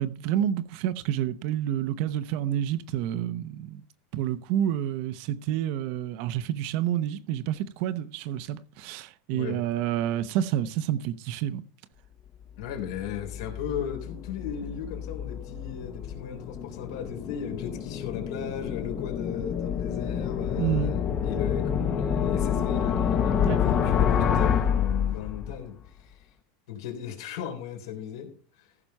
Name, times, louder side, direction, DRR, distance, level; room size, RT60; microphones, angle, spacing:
voice 1, 0.0-3.8 4.1-11.6 20.6-21.0 23.4-23.6, right 11 dB, 50° right, 0.8 m, -29 dB
voice 2, 9.3-9.6 12.6-26.3 26.7-28.3, left 9 dB, 75° left, 3.6 m, -36 dB
sound 1, 12.7-25.6, left 8 dB, 25° left, 0.9 m, -28 dB
15.0 x 6.0 x 5.4 m
supercardioid pair, 165°, 2 cm